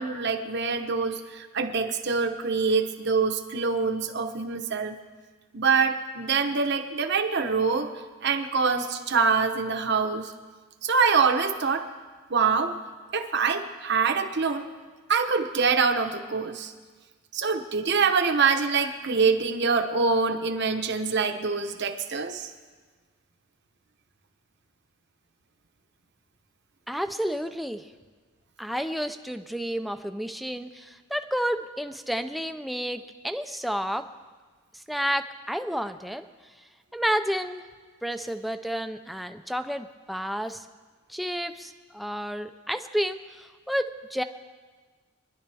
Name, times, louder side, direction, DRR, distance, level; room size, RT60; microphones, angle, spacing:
voice 1, 0.0-5.0 5.5-7.9 8.2-10.3 10.8-11.9 12.3-12.8 13.1-14.7 15.1-16.7 17.3-22.5, right 5 dB, 55° right, 7 dB, 1.0 m, -25 dB
voice 2, 26.9-27.9 28.6-34.0 34.9-36.2 36.9-37.6 38.0-40.7 41.1-44.2, equal, ahead, 7 dB, 0.5 m, -30 dB
24.0 x 11.0 x 3.5 m, 1.4 s
head